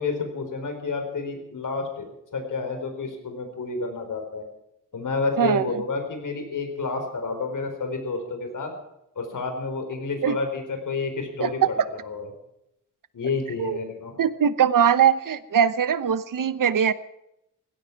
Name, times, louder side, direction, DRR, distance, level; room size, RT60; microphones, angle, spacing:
voice 1, 0.0-2.1 2.3-4.5 4.9-8.7 9.1-12.3 13.1-14.1, left 4 dB, 70° left, 5 dB, 4.4 m, -30 dB
voice 2, 5.4-5.8 10.2-10.4 11.4-11.5 13.6-13.8 14.2-16.9, right 8 dB, 80° right, 14 dB, 1.0 m, -21 dB
18.0 x 16.5 x 4.7 m, 0.82 s
wide cardioid pair, 130°, 32 cm